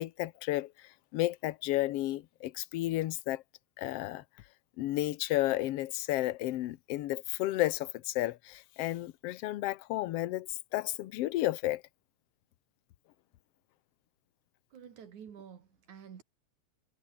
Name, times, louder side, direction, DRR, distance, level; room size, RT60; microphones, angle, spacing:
voice 1, 0.0-3.4 3.8-4.2 4.8-11.8, left 16 dB, 65° left, 1.6 m, -32 dB
voice 2, 14.7-16.2, right 8 dB, 80° right, 3.9 m, -49 dB
omnidirectional pair, 3.4 m